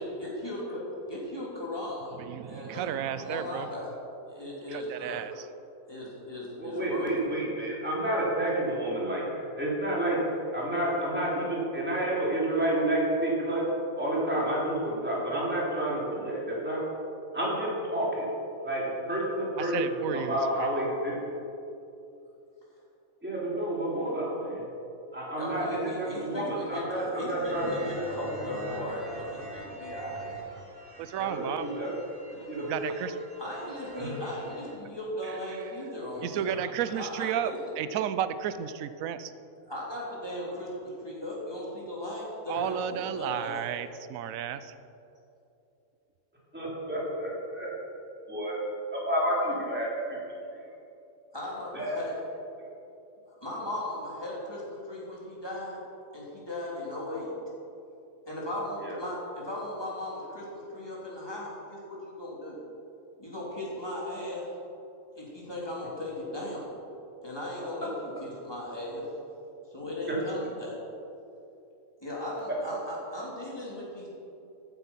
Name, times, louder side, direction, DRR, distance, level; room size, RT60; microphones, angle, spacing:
voice 1, 0.0-2.2 2.5-2.9 3.2-4.0 4.3-5.2 5.9-7.1 25.4-30.4 33.4-36.5 36.9-37.6 39.6-43.6 51.3-52.2 53.4-55.8 56.1-57.3 58.2-62.6 63.2-64.5 65.1-66.7 67.2-69.1 69.7-70.9 72.0-74.1, left 1 dB, 15° left, -6 dB, 3.7 m, -37 dB
voice 2, 2.2-3.7 4.7-5.5 19.6-20.7 31.0-31.8 32.6-33.2 35.2-35.4 36.2-39.3 42.5-44.7, right 9 dB, 80° right, 12 dB, 1.0 m, -33 dB
voice 3, 6.6-13.6 14.0-16.8 17.3-18.3 18.6-19.8 20.3-21.1 23.2-24.6 25.1-27.6 31.2-31.9 32.5-33.0 34.0-34.1 46.5-47.7 48.3-48.5 49.0-50.2 51.7-52.1 58.8-58.9 67.6-67.7 70.1-70.2, right 1 dB, 10° right, -5 dB, 3.2 m, -30 dB
sound 1, 27.4-34.7, right 1 dB, 40° right, 1.9 m, -43 dB
14.0 x 9.5 x 5.8 m, 2.7 s
omnidirectional pair, 1.4 m